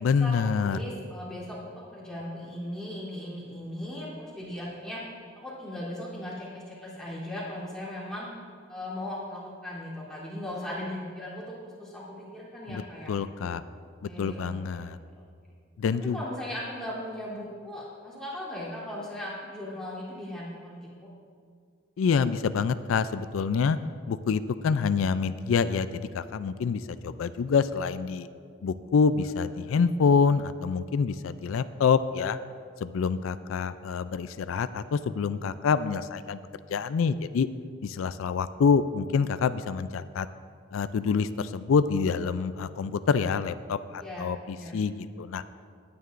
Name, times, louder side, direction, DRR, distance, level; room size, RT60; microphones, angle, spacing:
voice 1, 0.0-0.8 12.7-12.8 13.1-13.6 14.2-15.0 15.8-16.2 22.0-23.8 24.1-28.3 28.6-32.4 32.8-36.4 36.7-37.5 37.8-40.3 40.7-45.4, left 5 dB, 80° left, 13 dB, 0.4 m, -26 dB
voice 2, 0.6-1.6 1.9-5.0 5.3-8.3 8.7-13.1 14.0-14.8 16.0-21.1 44.0-44.2 44.5-44.8, left 1 dB, 5° left, -8 dB, 3.1 m, -38 dB
18.0 x 9.5 x 2.5 m, 2.2 s
head